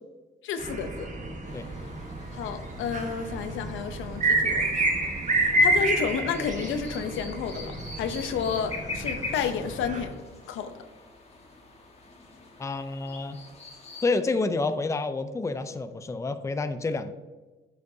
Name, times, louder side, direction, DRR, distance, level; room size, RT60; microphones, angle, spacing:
voice 1, 0.4-1.1 2.3-4.8 5.6-10.2 10.5-10.8, left 7 dB, 85° left, 9 dB, 0.7 m, -31 dB
sound 1, 0.6-10.0, right 1 dB, 40° right, 1.2 m, -29 dB
sound 2, 1.5-14.1, left 3 dB, 30° left, 1.4 m, -44 dB
voice 2, 12.6-13.4 14.0-17.1, left 3 dB, 15° left, 10 dB, 0.4 m, -29 dB
9.4 x 5.0 x 2.7 m, 1.2 s
cardioid pair, 90°, 20 cm